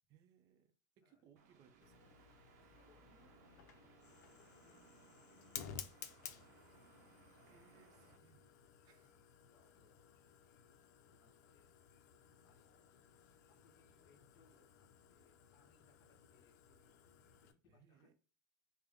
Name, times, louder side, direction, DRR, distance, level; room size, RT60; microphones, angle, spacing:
voice 1, 0.1-2.1 2.6-2.8 7.4-8.6 8.8-9.2 17.7-18.1, right 8 dB, 45° right, 0.6 m, -69 dB
sound 1, 1.4-8.2, right 5 dB, 80° right, 0.8 m, -66 dB
Fire, 1.8-17.5, left 8 dB, 80° left, 0.5 m, -56 dB
voice 2, 2.7-5.9 6.1-6.3 8.9-10.3 11.1-11.7 12.4-13.0 13.5-18.1, left 4 dB, 45° left, 1.2 m, -74 dB
3.4 x 2.1 x 3.6 m
supercardioid pair, 125°, 9 cm